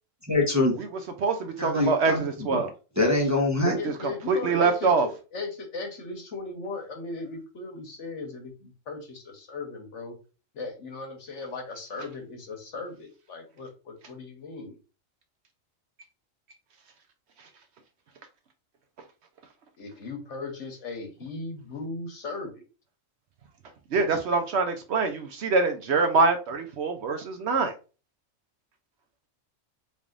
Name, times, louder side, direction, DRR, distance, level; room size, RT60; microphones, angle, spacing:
voice 1, 0.3-0.7 1.6-2.2 2.5-2.6 3.0-3.8, left 2 dB, 15° right, 0.7 m, -23 dB
voice 2, 1.2-2.7 3.6-5.1 23.9-27.7, right 4 dB, 65° right, 0.8 m, -25 dB
voice 3, 3.8-10.2 10.5-14.8 19.8-22.5, left 3 dB, 65° left, 1.3 m, -37 dB
4.1 x 3.4 x 2.5 m
omnidirectional pair, 1.4 m